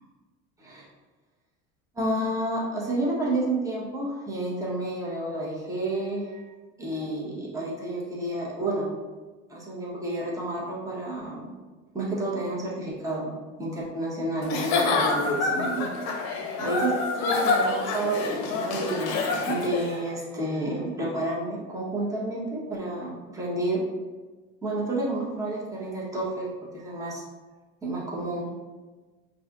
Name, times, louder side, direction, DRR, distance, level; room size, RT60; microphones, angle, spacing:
voice 1, 1.9-6.4 6.8-8.9 9.5-11.5 11.9-13.3 13.6-15.9 16.2-16.3 16.6-16.9 17.2-19.2 19.5-23.8 24.6-26.5 26.7-27.2 27.8-28.5, right 1 dB, 10° right, -5 dB, 1.0 m, -30 dB
Giggle / Chuckle chortle, 14.4-19.9, left 3 dB, 50° left, 0.7 m, -27 dB
4.8 x 2.8 x 2.4 m, 1.3 s
supercardioid pair, 105°, 35 cm